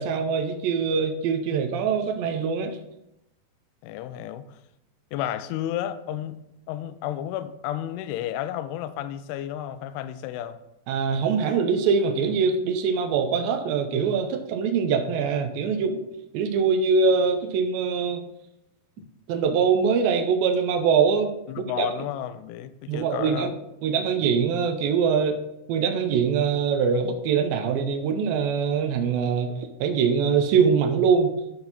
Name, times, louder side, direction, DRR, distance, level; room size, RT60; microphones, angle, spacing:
voice 1, 0.0-2.8 10.9-16.0 16.3-18.2 19.3-21.9 22.9-23.5 23.8-25.4 25.7-29.5 29.8-31.3, right 6 dB, 85° right, 2.1 m, -23 dB
voice 2, 3.8-4.6 5.1-6.4 6.7-10.6 19.0-19.1 21.5-23.5, left 11 dB, 85° left, 2.4 m, -32 dB
10.5 x 4.4 x 4.0 m
omnidirectional pair, 4.8 m